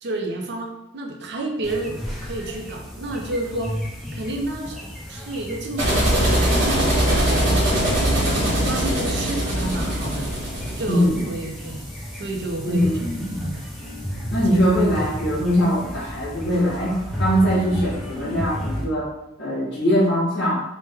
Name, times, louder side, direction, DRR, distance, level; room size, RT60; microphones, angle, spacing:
voice 1, 0.0-3.7 4.1-4.8 5.1-10.3 10.8-11.8 12.1-13.0 13.3-13.6 14.5-14.6, right 2 dB, 60° right, 1 dB, 0.5 m, -30 dB
sound 1, 1.6-18.8, equal, ahead, 0.5 m, -33 dB
sound 2, 5.8-11.1, right 1 dB, 75° right, 1.2 m, -21 dB
voice 2, 10.9-11.2 12.7-13.5 14.3-16.9 17.2-19.1 19.4-20.6, equal, 75° left, -8 dB, 0.9 m, -21 dB
3.1 x 2.1 x 3.3 m, 0.90 s
head